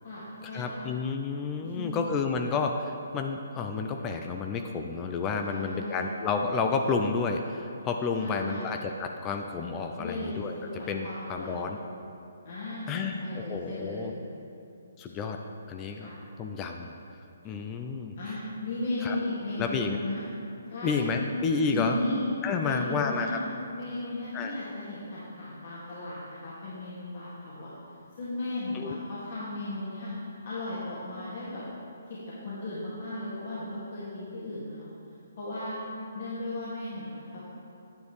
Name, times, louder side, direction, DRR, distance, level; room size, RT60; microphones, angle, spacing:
voice 1, 0.0-0.9 1.6-2.0 5.4-6.1 8.2-8.7 10.0-11.6 12.4-14.1 15.9-16.2 17.4-17.5 18.2-20.2 20.7-21.4 21.7-22.2 22.6-23.4 23.8-27.7 28.2-30.1 30.4-31.6 32.1-34.9 35.4-35.8 36.1-37.4, left 2 dB, 50° left, -9 dB, 2.0 m, -36 dB
voice 2, 0.5-10.5 10.9-11.8 12.9-14.1 15.0-15.4 15.7-16.1 16.4-16.9 17.4-18.1 19.0-19.2 19.6-20.0 20.8-22.0 22.4-23.4 24.3-24.5 28.7-29.0, left 4 dB, 20° left, 4 dB, 0.5 m, -30 dB
9.6 x 8.1 x 3.2 m, 2.8 s
figure-of-eight pair, 140°, 0 cm